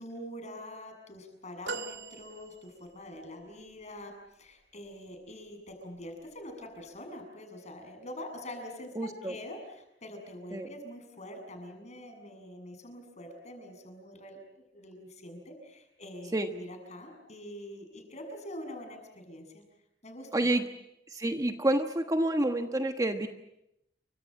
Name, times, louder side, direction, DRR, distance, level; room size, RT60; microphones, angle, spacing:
voice 1, 0.0-14.4 14.7-19.6 20.0-20.5, left 1 dB, 40° left, 5 dB, 7.3 m, -45 dB
sound 1, 1.7-3.1 3.8-3.9, right 4 dB, 90° right, 1.5 m, -41 dB
voice 2, 9.0-9.4 10.5-10.7 16.3-16.5 20.3-20.6 21.1-23.3, right 1 dB, 20° right, 6 dB, 1.3 m, -28 dB
29.0 x 25.0 x 7.6 m, 0.83 s
head